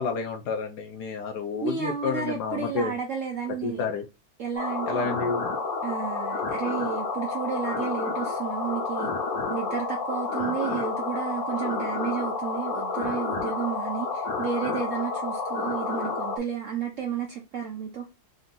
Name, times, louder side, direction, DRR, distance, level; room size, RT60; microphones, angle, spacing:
voice 1, 0.0-2.9 3.6-4.0 4.9-5.4, left 4 dB, 70° left, 1.0 m, -30 dB
voice 2, 1.6-3.8 4.4-5.2 5.8-9.1 9.5-18.1, right 7 dB, 65° right, 0.7 m, -32 dB
sound 1, 4.5-16.4, left 4 dB, 55° left, 1.4 m, -30 dB
3.8 x 2.7 x 3.6 m
omnidirectional pair, 2.1 m